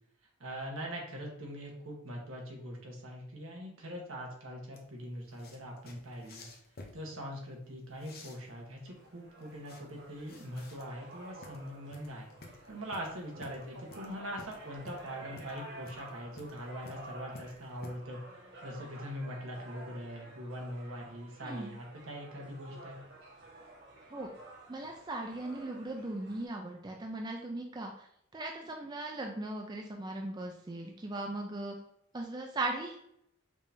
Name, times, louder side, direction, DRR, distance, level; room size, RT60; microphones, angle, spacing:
voice 1, 0.4-6.5 6.9-12.3 12.7-18.2 18.6-23.0, equal, 70° right, 0 dB, 1.3 m, -42 dB
sound 1, 4.7-17.9, left 3 dB, 45° left, 0.7 m, -53 dB
sound 2, 8.9-26.5, right 2 dB, 55° right, 1.1 m, -52 dB
voice 2, 21.4-21.7 24.1-24.3 24.7-28.1 28.3-31.7 32.1-33.0, right 2 dB, 20° right, 1 dB, 0.4 m, -38 dB
5.1 x 3.4 x 2.7 m, 0.73 s
head